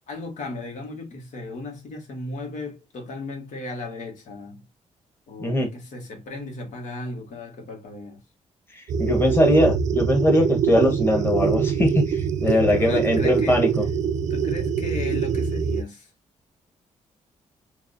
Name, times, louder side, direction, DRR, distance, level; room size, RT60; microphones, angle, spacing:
voice 1, 0.0-4.6 5.3-8.2 12.4-13.7 14.3-16.1, left 2 dB, 80° left, 1.5 m, -36 dB
voice 2, 8.7-13.8, left 1 dB, 20° left, 1.4 m, -21 dB
sound 1, 8.9-15.8, right 7 dB, 75° right, 0.5 m, -24 dB
4.6 x 2.6 x 2.6 m
cardioid pair, 105°, 13 cm